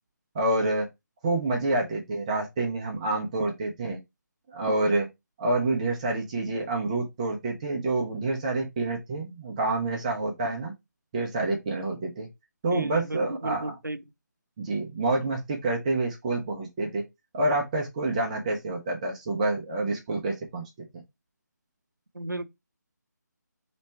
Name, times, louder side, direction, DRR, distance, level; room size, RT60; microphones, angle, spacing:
voice 1, 0.3-0.9 1.2-4.0 4.5-5.1 5.4-10.7 11.1-12.3 12.6-13.7 14.6-17.0 17.3-21.0, right 2 dB, 20° right, 0.7 m, -28 dB
voice 2, 12.7-14.0 22.1-22.4, right 1 dB, 85° right, 0.7 m, -34 dB
3.1 x 3.0 x 4.3 m
figure-of-eight pair, 150°, 10 cm